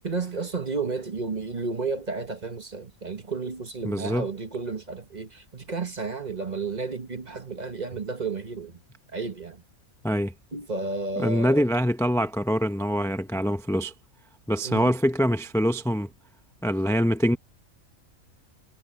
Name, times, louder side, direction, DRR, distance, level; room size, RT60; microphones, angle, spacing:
voice 1, 0.0-8.7 9.1-9.6 10.5-11.7 14.6-14.9, right 4 dB, 30° right, 1.4 m, -32 dB
voice 2, 3.8-4.3 10.0-10.3 11.2-13.9 14.5-16.1 16.6-17.4, equal, 5° left, 0.8 m, -24 dB
omnidirectional pair, 1.4 m